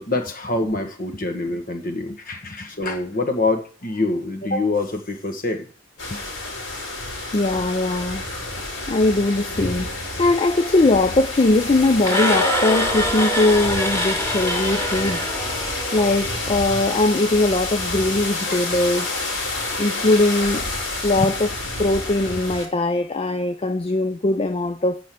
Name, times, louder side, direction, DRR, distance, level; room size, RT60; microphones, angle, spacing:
voice 1, 0.0-5.7 18.5-18.6, left 2 dB, 50° left, 1.6 m, -25 dB
sound 1, 6.0-22.7, left 2 dB, 80° left, 3.9 m, -29 dB
voice 2, 7.3-8.5 8.9-15.3 15.9-19.2 19.8-20.7 21.0-25.0, left 2 dB, 30° left, 0.5 m, -21 dB
sound 2, 12.0-16.2, equal, 15° left, 2.1 m, -24 dB
8.8 x 5.2 x 7.6 m
head